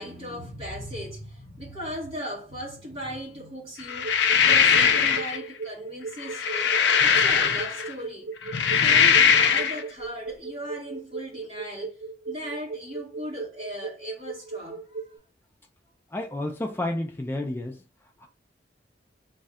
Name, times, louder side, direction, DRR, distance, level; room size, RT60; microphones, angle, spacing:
voice 1, 0.0-8.3 8.7-12.0 12.3-15.1, equal, 30° right, 2.1 m, -38 dB
sound 1, 3.9-5.4 6.2-7.9 8.4-9.8, left 7 dB, 70° left, 0.5 m, -20 dB
sound 2, 3.9-15.2, right 4 dB, 80° right, 0.8 m, -36 dB
voice 2, 16.1-17.8 18.2-18.3, left 1 dB, 10° left, 0.4 m, -31 dB
3.2 x 2.4 x 4.1 m
head